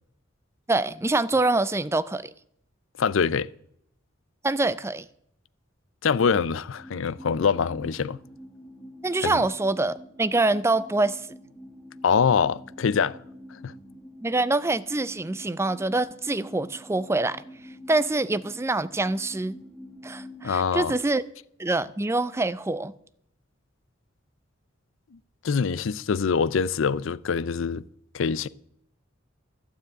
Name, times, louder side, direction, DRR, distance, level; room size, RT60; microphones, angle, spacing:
voice 1, 0.7-2.3 4.4-5.1 9.0-11.3 14.2-17.4 17.9-19.6 20.0-21.2 21.6-22.9, right 2 dB, 15° right, 0.4 m, -25 dB
voice 2, 3.0-3.5 6.0-8.2 9.2-9.4 12.0-13.2 13.5-13.7 20.4-20.9 25.4-27.8 28.1-28.5, left 6 dB, 75° left, 0.5 m, -24 dB
sound 1, 6.8-20.4, equal, 5° left, 1.2 m, -46 dB
12.0 x 7.1 x 8.8 m
head